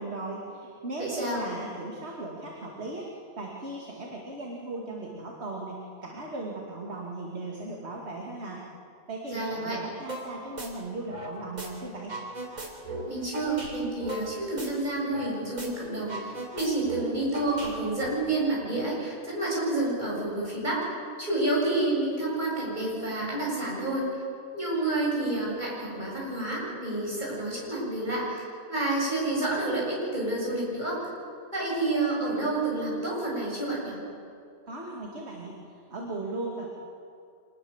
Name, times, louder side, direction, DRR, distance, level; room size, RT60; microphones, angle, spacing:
voice 1, 0.0-8.7 9.1-12.2 34.7-36.7, right 2 dB, 50° right, -1 dB, 2.6 m, -37 dB
voice 2, 1.1-1.4 9.3-9.8 13.1-20.9 21.2-24.2 24.5-28.4 28.7-31.1 31.5-34.0, right 2 dB, 30° right, -5 dB, 8.0 m, -29 dB
sound 1, 10.1-10.3 10.6-11.7 12.0-15.3 15.6-15.7 16.0-18.1, right 2 dB, 85° right, 4.0 m, -37 dB
25.5 x 20.5 x 7.2 m, 2.5 s
omnidirectional pair, 1.5 m